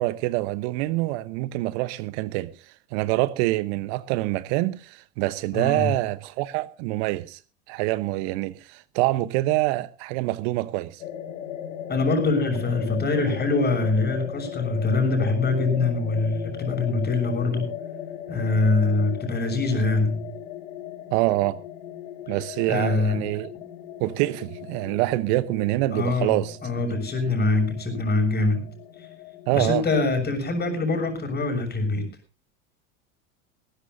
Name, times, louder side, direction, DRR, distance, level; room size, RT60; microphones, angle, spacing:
voice 1, 0.0-7.4 7.7-11.0 21.1-21.6 22.3-23.5 24.0-26.6 29.5-29.8, right 18 dB, 55° right, 1.0 m, -26 dB
voice 2, 5.5-6.0 11.9-17.7 18.3-20.3 22.7-23.2 25.9-26.3 26.6-28.7 29.5-32.0, left 3 dB, 25° left, 6.8 m, -24 dB
sound 1, 11.0-30.6, left 9 dB, 75° left, 2.3 m, -38 dB
20.0 x 17.0 x 2.7 m
hypercardioid pair, 90°, 39 cm